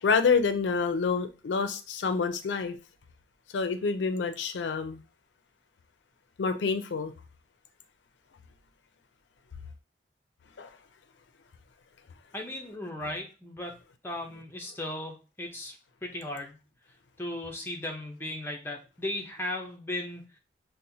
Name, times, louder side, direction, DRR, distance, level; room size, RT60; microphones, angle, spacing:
voice 1, 0.0-2.7 3.5-5.0 6.4-7.1 10.6-10.7, left 5 dB, 90° left, 0.4 m, -27 dB
voice 2, 12.3-13.8 14.0-15.8 16.0-16.6 17.2-20.4, left 1 dB, 15° left, 0.5 m, -36 dB
4.2 x 2.1 x 2.7 m
head